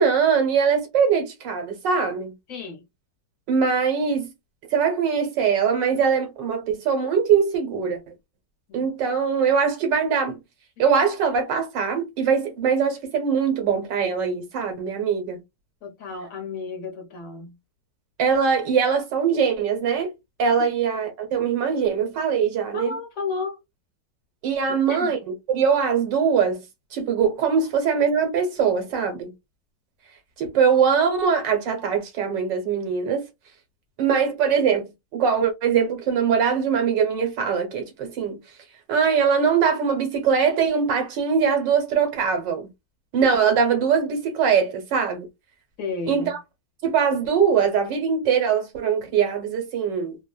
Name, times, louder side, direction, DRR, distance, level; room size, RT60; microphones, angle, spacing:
voice 1, 0.0-2.3 3.5-4.3 4.7-8.1 8.7-10.4 10.8-15.4 18.2-20.1 20.4-22.9 24.4-26.6 26.9-29.3 30.4-33.2 34.0-38.4 38.9-42.7 43.1-45.3 46.1-46.4 46.8-50.2, right 6 dB, 85° right, 1.7 m, -22 dB
voice 2, 2.5-2.8 8.7-8.9 15.8-17.5 22.7-23.6 24.7-25.2 45.8-46.4, left 4 dB, 55° left, 1.2 m, -32 dB
3.4 x 2.1 x 2.3 m
omnidirectional pair, 1.9 m